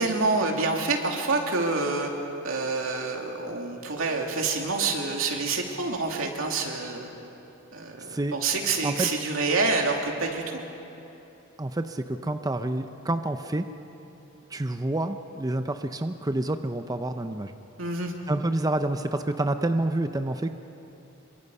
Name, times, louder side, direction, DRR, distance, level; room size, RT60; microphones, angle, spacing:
voice 1, 0.0-2.1 2.4-7.1 7.7-10.6 17.8-18.1, right 3 dB, 90° right, 1 dB, 2.7 m, -27 dB
voice 2, 11.6-13.7 14.5-17.5 18.3-20.5, right 1 dB, 20° right, 8 dB, 0.6 m, -28 dB
26.5 x 23.5 x 5.5 m, 2.9 s
head